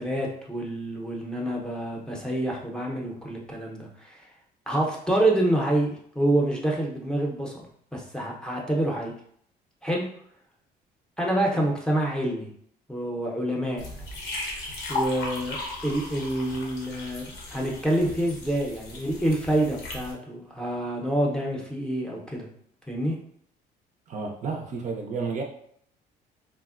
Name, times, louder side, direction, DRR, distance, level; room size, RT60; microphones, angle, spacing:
voice 1, 0.0-4.2 4.7-9.1 9.8-10.1 11.2-12.5 12.9-13.8 14.9-15.6 15.8-22.5 22.9-23.2, right 1 dB, 5° left, -1 dB, 0.6 m, -27 dB
sound 1, 13.8-20.1, left 2 dB, 85° left, 0.8 m, -36 dB
voice 2, 24.1-25.4, right 4 dB, 45° right, 2 dB, 0.4 m, -31 dB
3.4 x 2.1 x 2.3 m, 0.66 s
cardioid pair, 110°, 17 cm